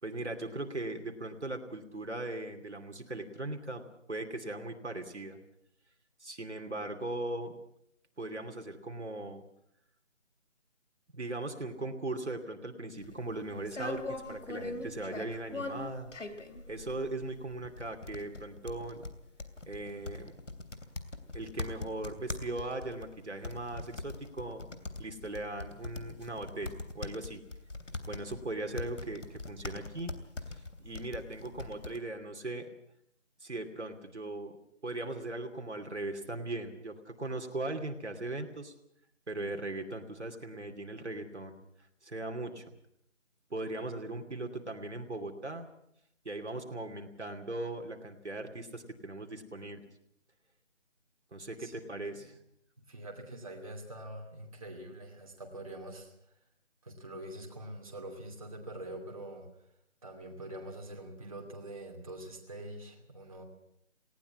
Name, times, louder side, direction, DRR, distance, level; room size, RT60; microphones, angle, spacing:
voice 1, 0.0-3.8 4.1-5.4 6.2-7.6 8.2-9.4 11.1-16.1 16.7-19.0 19.7-20.3 21.3-27.4 28.1-30.1 30.5-32.7 33.4-34.6 34.8-38.7 39.3-41.6 42.0-42.6 43.5-45.7 46.2-49.8 51.3-52.3, right 2 dB, 65° right, 5 dB, 2.8 m, -39 dB
sound 1, 13.0-32.0, left 2 dB, 80° left, 3.0 m, -42 dB
voice 2, 51.4-52.2 52.9-56.1 56.8-59.5 60.0-63.4, right 1 dB, 30° right, 0 dB, 2.7 m, -45 dB
19.5 x 18.0 x 8.5 m, 0.73 s
figure-of-eight pair, 175°, 37 cm